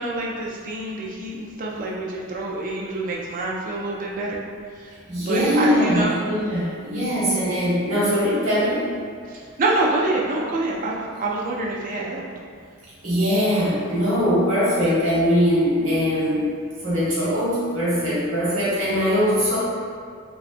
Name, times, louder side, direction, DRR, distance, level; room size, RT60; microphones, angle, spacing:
voice 1, 0.0-4.4 4.8-4.9 5.2-6.1 9.3-12.3, right 2 dB, 40° right, -3 dB, 0.3 m, -26 dB
voice 2, 5.1-8.9 13.0-16.4 16.8-19.6, equal, 80° right, -9 dB, 1.1 m, -21 dB
2.7 x 2.3 x 2.4 m, 2.1 s
head